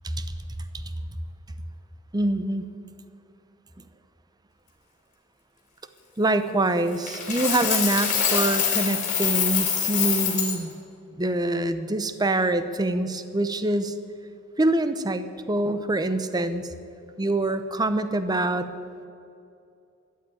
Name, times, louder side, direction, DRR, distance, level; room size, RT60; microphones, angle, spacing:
voice 1, 2.1-2.7 6.2-10.7 11.1-13.9 14.6-16.7 17.2-18.7, right 2 dB, 20° right, 11 dB, 0.7 m, -25 dB
Coin (dropping), 7.1-10.6, left 7 dB, 40° left, 3.1 m, -25 dB
13.5 x 9.3 x 9.3 m, 2.5 s
head